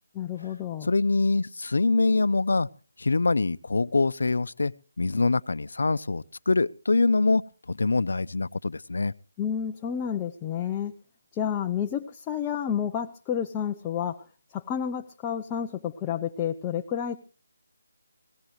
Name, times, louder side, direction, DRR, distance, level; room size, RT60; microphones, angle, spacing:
voice 1, 0.1-0.9 9.4-11.0 11.3-14.2 14.5-17.2, left 8 dB, 15° left, 0.7 m, -30 dB
voice 2, 0.8-2.7 3.0-4.7 5.0-7.4 7.7-9.1, left 3 dB, 70° left, 0.7 m, -24 dB
22.0 x 18.0 x 3.2 m
figure-of-eight pair, 165°, 0 cm